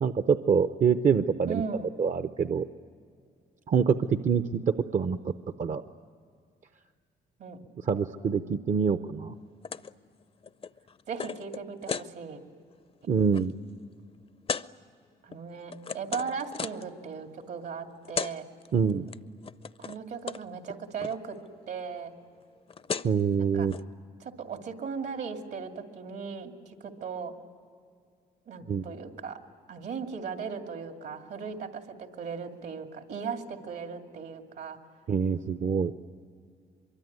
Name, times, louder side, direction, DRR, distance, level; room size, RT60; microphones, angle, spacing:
voice 1, 0.0-1.6 2.0-2.6 3.7-5.3 5.6-5.8 7.8-9.3 13.1-13.5 18.7-19.1 23.0-23.7 28.7-28.8 35.1-35.9, right 6 dB, 50° right, 10 dB, 0.7 m, -25 dB
voice 2, 1.5-1.9 7.4-7.6 11.1-12.4 15.2-18.5 19.8-21.4 21.7-22.1 23.4-23.7 24.2-27.3 28.5-29.4 29.7-34.8, right 6 dB, 75° right, 5 dB, 2.5 m, -37 dB
sound 1, 9.6-9.9 10.2-12.1 12.6-12.8 13.1-13.4 14.5-14.7 15.3-16.9 17.8-17.9 18.0-18.3 18.6-19.2 19.4-20.0 20.3-20.4 20.7-21.2 22.4-22.5 22.7-23.2 23.7-23.8, left 5 dB, 35° left, 0.6 m, -36 dB
23.5 x 23.5 x 9.5 m, 2.2 s
cardioid pair, 70°, 17 cm